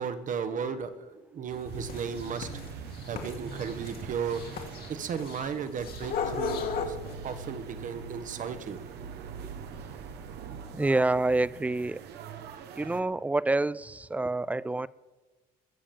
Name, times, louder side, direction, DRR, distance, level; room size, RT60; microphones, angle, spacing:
voice 1, 0.0-2.5 3.1-4.4 4.9-7.0 7.2-8.8, right 6 dB, 50° right, 1.3 m, -35 dB
Soundwalk Soundscape, 1.5-7.1, left 6 dB, 65° left, 2.1 m, -36 dB
sound 1, 1.6-13.0, right 6 dB, 75° right, 1.2 m, -42 dB
voice 2, 10.7-12.0 12.8-14.9, right 2 dB, 10° right, 0.4 m, -27 dB
21.0 x 7.3 x 7.1 m
cardioid pair, 110°, 17 cm